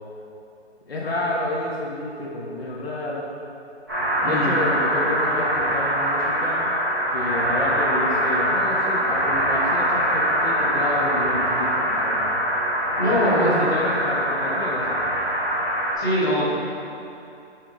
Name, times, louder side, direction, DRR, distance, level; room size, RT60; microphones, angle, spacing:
voice 1, 0.9-3.3 4.2-6.7 7.1-12.5 13.1-15.0, left 2 dB, 60° left, -4 dB, 1.1 m, -29 dB
sound 1, 3.9-15.9, equal, 20° right, 1.3 m, -23 dB
voice 2, 4.2-4.6 13.0-13.6 16.0-16.5, equal, 15° left, -11 dB, 1.3 m, -22 dB
5.8 x 5.6 x 3.8 m, 2.7 s
hypercardioid pair, 180°, 33 cm